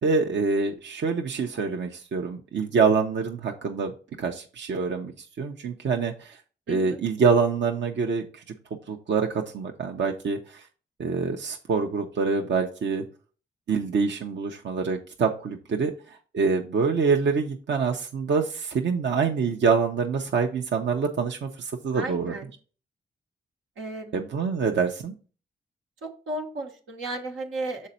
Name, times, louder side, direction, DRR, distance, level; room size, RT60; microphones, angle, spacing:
voice 1, 0.0-3.9 4.2-6.4 6.7-8.4 8.9-10.7 11.0-13.0 13.7-22.3 24.1-25.1, right 5 dB, 65° right, 2 dB, 0.8 m, -26 dB
voice 2, 6.7-7.0 21.9-22.5 23.8-24.3 26.0-27.9, right 2 dB, 90° right, 0 dB, 1.2 m, -34 dB
6.5 x 4.1 x 4.2 m, 0.38 s
supercardioid pair, 45°, 20 cm